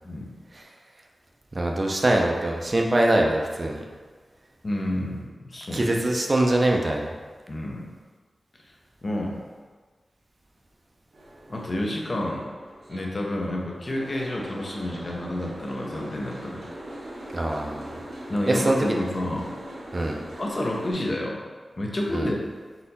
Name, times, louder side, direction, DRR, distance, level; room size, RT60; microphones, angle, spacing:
voice 1, 1.5-3.8 5.7-7.1 17.3-17.9 18.5-19.0 19.9-20.2 22.1-22.3, right 1 dB, 35° right, 1 dB, 0.5 m, -23 dB
voice 2, 4.6-6.0 7.5-7.9 9.0-9.4 11.5-12.5 12.9-16.7 18.3-19.5 20.4-21.4 21.8-22.4, left 1 dB, 40° left, -1 dB, 0.6 m, -29 dB
Boat Water vehicle, 11.1-20.9, right 1 dB, 90° right, 1.0 m, -41 dB
4.1 x 2.8 x 3.9 m, 1.5 s
wide cardioid pair, 100°, 0 cm